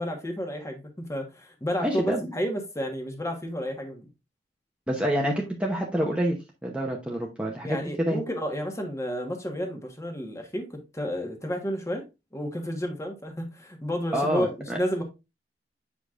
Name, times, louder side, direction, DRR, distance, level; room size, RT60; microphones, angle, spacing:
voice 1, 0.0-2.0 2.3-4.1 7.6-12.1 12.3-15.0, equal, 15° left, 1.3 m, -31 dB
voice 2, 1.8-2.3 4.9-8.2 14.1-14.8, equal, 5° right, 0.8 m, -27 dB
7.8 x 5.1 x 2.4 m
head